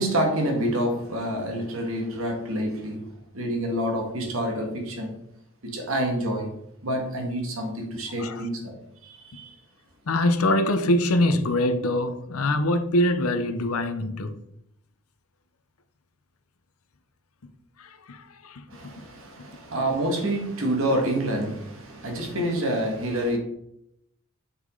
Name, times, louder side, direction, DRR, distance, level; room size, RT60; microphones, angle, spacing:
voice 1, 0.0-3.1 3.3-5.1 5.6-6.5 6.8-8.7 9.0-9.5 18.7-23.4, right 1 dB, 70° right, 1.9 m, -27 dB
voice 2, 10.1-14.4 17.8-18.6, left 1 dB, 80° left, 0.7 m, -24 dB
7.3 x 6.3 x 3.8 m
head